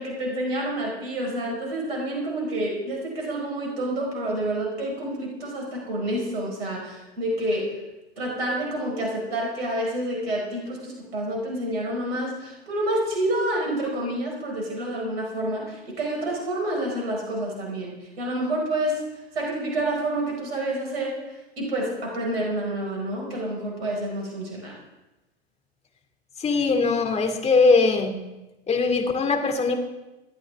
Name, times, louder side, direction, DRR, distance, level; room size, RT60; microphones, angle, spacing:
voice 1, 0.0-7.8 8.2-19.0 19.3-21.1 21.6-24.8, right 1 dB, 70° right, -1 dB, 4.8 m, -28 dB
voice 2, 26.4-28.1 28.7-29.8, left 4 dB, 20° left, 4 dB, 2.6 m, -21 dB
26.0 x 9.9 x 3.6 m, 1.0 s
figure-of-eight pair, 95°, 32 cm